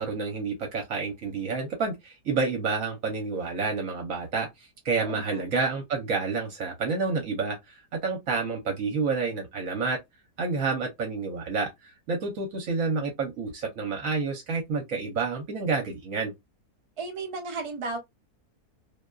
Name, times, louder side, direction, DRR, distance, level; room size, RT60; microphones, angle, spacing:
voice 1, 0.0-4.5 4.8-10.0 10.4-16.3, right 4 dB, 65° right, 1.1 m, -29 dB
voice 2, 5.0-5.4 17.0-18.0, right 3 dB, 35° right, 0.5 m, -34 dB
2.7 x 2.3 x 2.2 m
omnidirectional pair, 1.6 m